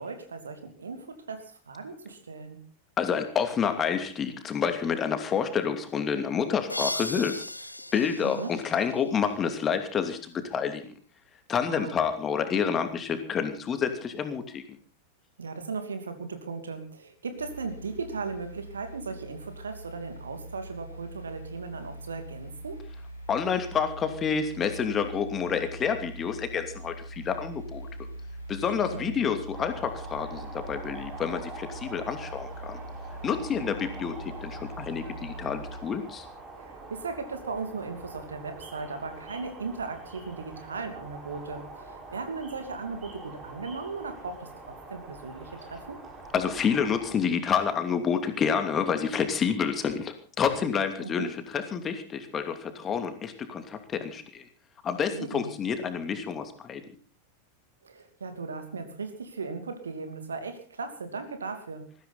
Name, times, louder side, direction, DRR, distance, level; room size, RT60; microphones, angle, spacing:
voice 1, 0.0-2.6 8.2-8.5 11.7-12.0 15.4-22.8 28.9-29.2 36.6-46.0 51.0-51.3 55.1-55.5 57.8-61.9, right 4 dB, 70° right, 8 dB, 2.7 m, -37 dB
voice 2, 3.0-7.4 7.9-10.9 11.5-14.6 23.3-27.9 28.5-32.8 33.2-36.2 46.3-54.4 54.8-56.8, left 7 dB, 25° left, 7 dB, 2.7 m, -29 dB
sound 1, 6.7-9.4, left 1 dB, 85° left, 0.8 m, -37 dB
sound 2, 17.4-35.8, right 1 dB, 90° right, 4.9 m, -42 dB
sound 3, 29.5-47.2, right 2 dB, 25° right, 5.3 m, -44 dB
20.5 x 15.0 x 4.2 m, 0.39 s
figure-of-eight pair, 90°, 0 cm